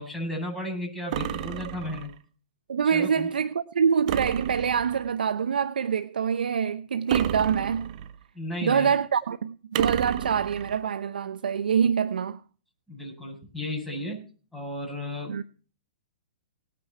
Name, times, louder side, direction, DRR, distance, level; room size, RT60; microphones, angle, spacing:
voice 1, 0.0-2.1 2.8-3.3 8.3-8.9 12.9-14.2 14.5-15.3, left 1 dB, 5° left, 7.7 m, -34 dB
sound 1, 1.1-2.2 4.1-5.1 7.1-8.2 9.7-10.8, right 12 dB, 50° right, 1.2 m, -31 dB
voice 2, 2.7-7.9 8.6-12.4 15.3-15.4, right 7 dB, 80° right, 0.8 m, -25 dB
19.0 x 9.4 x 4.4 m
hypercardioid pair, 130°, 5 cm